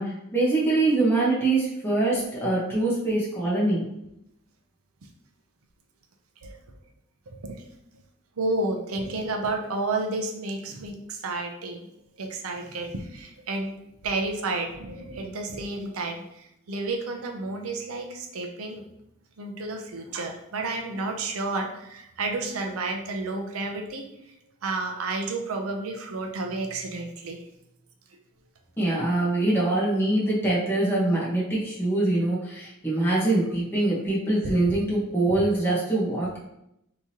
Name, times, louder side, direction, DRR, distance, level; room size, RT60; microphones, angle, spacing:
voice 1, 0.0-3.8 28.8-36.4, right 2 dB, 10° left, -7 dB, 1.2 m, -24 dB
voice 2, 7.3-7.6 8.4-11.9 12.2-13.8 14.0-18.8 19.4-24.1 24.6-27.4 34.4-34.6, right 2 dB, 75° right, 3 dB, 0.6 m, -31 dB
3.6 x 2.9 x 2.9 m, 0.80 s
head